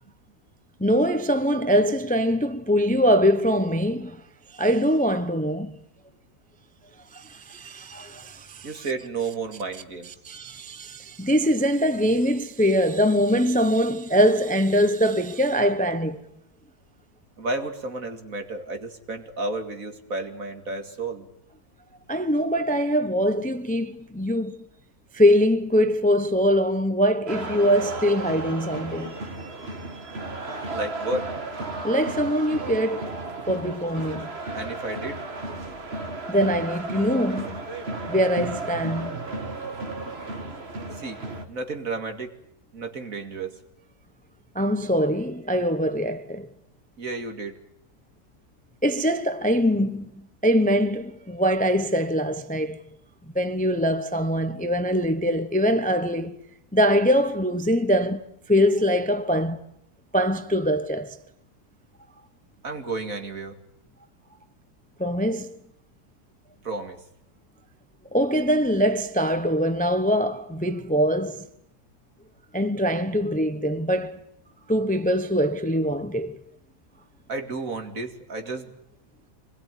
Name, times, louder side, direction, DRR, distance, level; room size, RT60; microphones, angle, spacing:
voice 1, 0.8-4.2 4.5-5.8 7.1-8.9 10.1-16.2 22.1-24.6 25.1-29.1 31.8-33.1 33.5-34.3 36.3-37.6 38.1-39.2 44.5-46.5 48.8-52.8 53.3-56.4 56.7-58.2 58.5-59.6 60.1-61.2 65.0-65.5 68.1-71.5 72.5-74.2 74.7-76.4, equal, 5° left, 0.9 m, -23 dB
voice 2, 8.6-10.1 17.4-21.3 30.7-31.3 34.5-35.2 41.0-41.2 41.5-42.3 42.7-43.5 47.0-47.6 62.6-63.6 66.6-67.0 77.3-78.7, right 3 dB, 55° right, 2.7 m, -32 dB
sound 1, 27.3-41.5, right 2 dB, 40° right, 2.1 m, -34 dB
25.5 x 21.0 x 9.3 m
omnidirectional pair, 1.7 m